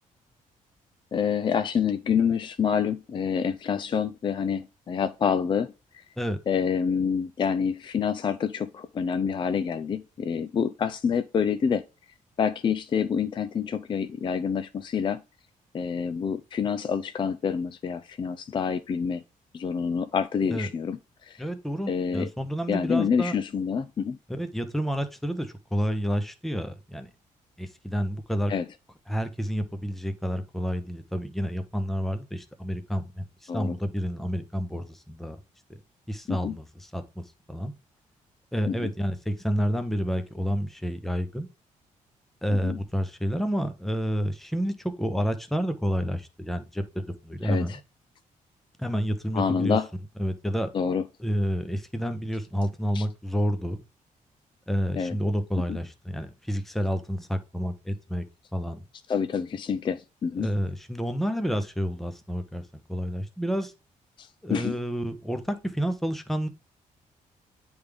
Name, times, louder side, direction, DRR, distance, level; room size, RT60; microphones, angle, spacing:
voice 1, 1.1-6.0 6.5-11.8 12.4-15.2 15.7-19.2 19.5-21.4 21.9-22.3 22.7-24.2 28.5-28.7 33.5-33.8 36.3-36.5 38.7-38.9 42.5-42.8 47.4-47.8 49.3-49.9 50.7-51.0 52.9-53.1 55.0-55.2 55.7-55.8 59.1-60.5 64.2-64.8, left 6 dB, 35° left, 0.4 m, -27 dB
voice 2, 21.4-23.3 24.3-27.1 27.6-28.5 29.1-35.4 36.1-37.7 38.5-41.5 42.4-47.8 48.8-49.8 50.2-50.7 51.2-53.8 54.7-58.3 58.5-58.8 60.4-62.6 62.9-63.7 64.4-66.5, equal, ahead, 0.8 m, -29 dB
9.5 x 3.5 x 3.5 m
cardioid pair, 135°, 14 cm